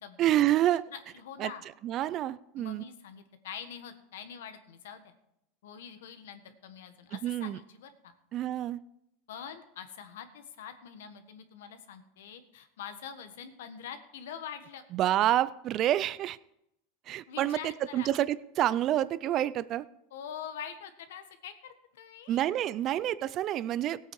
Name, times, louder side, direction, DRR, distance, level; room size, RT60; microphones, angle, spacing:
voice 1, 0.2-0.8 1.4-1.5 1.8-2.8 7.2-7.6 8.3-8.8 14.9-16.4 17.1-17.6 17.9-19.9 22.3-24.0, right 12 dB, 35° right, 18 dB, 0.4 m, -28 dB
voice 2, 0.9-1.6 2.6-5.1 5.6-8.1 9.3-14.8 17.3-18.1 20.1-22.4, left 8 dB, 85° left, 9 dB, 1.4 m, -44 dB
16.5 x 8.6 x 4.8 m, 0.80 s
supercardioid pair, 145°, 0 cm